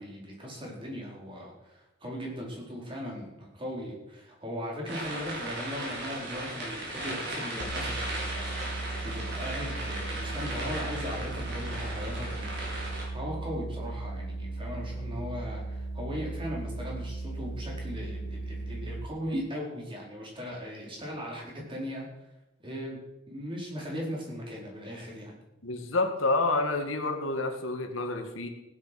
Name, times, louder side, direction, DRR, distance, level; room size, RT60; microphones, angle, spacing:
voice 1, 0.0-12.6 13.1-22.1 22.6-23.0 23.3-25.4, equal, 25° right, -2 dB, 4.4 m, -38 dB
sound 1, 4.9-13.0, right 1 dB, 60° right, 5.3 m, -37 dB
sound 2, 7.6-19.1, right 2 dB, 60° left, 1.3 m, -37 dB
voice 2, 25.6-28.5, left 2 dB, 85° left, 5 dB, 2.0 m, -28 dB
16.0 x 10.5 x 6.0 m, 0.95 s
head